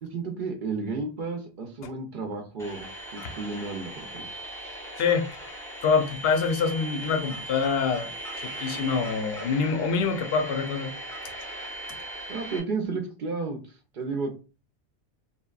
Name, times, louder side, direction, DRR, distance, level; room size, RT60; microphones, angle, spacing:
voice 1, 0.0-2.9 3.1-4.3 12.3-14.3, right 4 dB, 60° right, 0.6 m, -32 dB
sound 1, 2.6-12.6, right 1 dB, 5° left, 0.6 m, -39 dB
voice 2, 5.8-10.9, left 5 dB, 65° left, 0.7 m, -25 dB
2.7 x 2.1 x 2.3 m
omnidirectional pair, 1.2 m